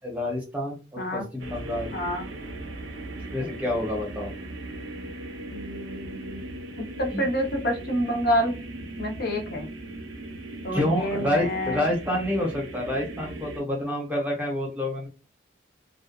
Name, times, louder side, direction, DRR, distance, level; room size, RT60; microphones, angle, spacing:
voice 1, 0.0-1.9 3.3-4.3 7.1-7.2 10.7-15.1, left 1 dB, 10° right, -2 dB, 0.8 m, -28 dB
voice 2, 1.0-1.3 1.9-2.3 5.5-6.4 7.0-8.5 9.0-9.7 10.6-11.8, equal, 55° left, 2 dB, 0.7 m, -28 dB
sound 1, 1.4-13.6, right 1 dB, 80° right, 0.6 m, -38 dB
2.7 x 2.2 x 2.3 m, 0.32 s
head